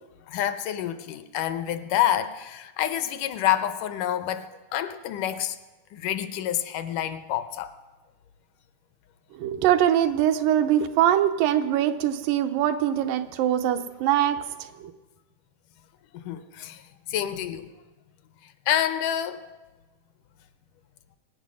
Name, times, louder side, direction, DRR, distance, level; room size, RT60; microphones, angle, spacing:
voice 1, 0.3-5.6 5.9-7.7 16.1-16.8 17.1-17.7 18.4-19.5, left 11 dB, 80° left, 11 dB, 2.2 m, -28 dB
voice 2, 9.3-14.4 14.8-14.9, right 11 dB, 85° right, 8 dB, 2.5 m, -23 dB
22.5 x 9.0 x 6.3 m, 1.2 s
omnidirectional pair, 3.8 m